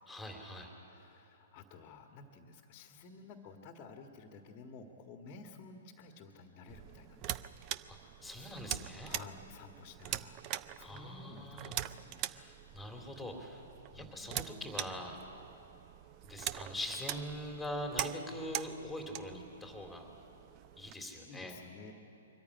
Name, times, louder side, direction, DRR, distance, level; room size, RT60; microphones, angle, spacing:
voice 1, 0.1-0.7 7.8-9.2 10.8-11.8 12.2-13.6 13.9-15.2 16.2-20.1 20.8-21.6, equal, 5° left, 2 dB, 3.1 m, -43 dB
voice 2, 0.8-7.5 9.1-10.4 10.8-12.2 13.9-14.3 21.3-21.9, left 4 dB, 35° left, 4 dB, 1.7 m, -53 dB
sound 1, 6.7-20.9, right 13 dB, 35° right, 0.6 m, -43 dB
23.5 x 14.5 x 10.0 m, 2.8 s
figure-of-eight pair, 120°, 0 cm